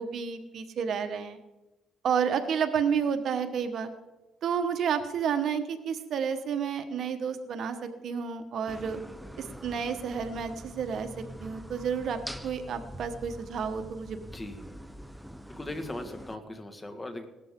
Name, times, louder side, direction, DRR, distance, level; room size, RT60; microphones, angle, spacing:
voice 1, 0.0-1.4 2.0-3.9 4.4-9.0 9.4-14.2, right 7 dB, 65° right, 8 dB, 1.3 m, -30 dB
sound 1, 8.7-16.4, equal, 5° right, 0.8 m, -44 dB
voice 2, 14.2-14.7 15.5-17.3, left 1 dB, 20° left, 6 dB, 1.7 m, -39 dB
18.0 x 13.0 x 3.8 m, 1.0 s
cardioid pair, 90°, 0 cm